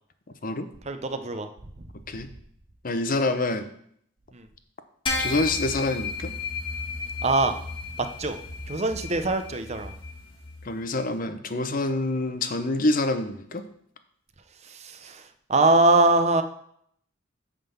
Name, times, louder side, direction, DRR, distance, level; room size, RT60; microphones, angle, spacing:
voice 1, 0.9-1.5 1.8-1.9 4.3-4.5 7.2-7.5 8.0-8.4 8.7-9.9 14.8-15.2 15.5-16.4, right 2 dB, 35° right, 8 dB, 0.7 m, -22 dB
voice 2, 2.8-3.7 5.2-6.3 10.6-13.6, left 2 dB, 45° left, 9 dB, 0.7 m, -26 dB
sound 1, 5.1-10.7, left 4 dB, 25° left, 1.5 m, -33 dB
9.1 x 3.8 x 7.0 m, 0.67 s
head